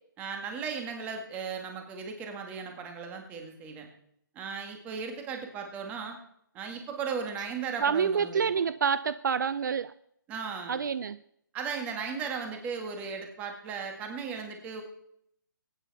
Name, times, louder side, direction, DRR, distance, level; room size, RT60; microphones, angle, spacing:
voice 1, 0.2-3.9 4.4-6.2 6.5-8.6 10.3-10.8 11.5-14.8, right 5 dB, 15° right, 4 dB, 1.9 m, -36 dB
voice 2, 7.8-9.9 10.7-11.2, right 6 dB, 60° right, 15 dB, 0.5 m, -27 dB
22.5 x 9.5 x 4.2 m, 0.72 s
hypercardioid pair, 165°, 11 cm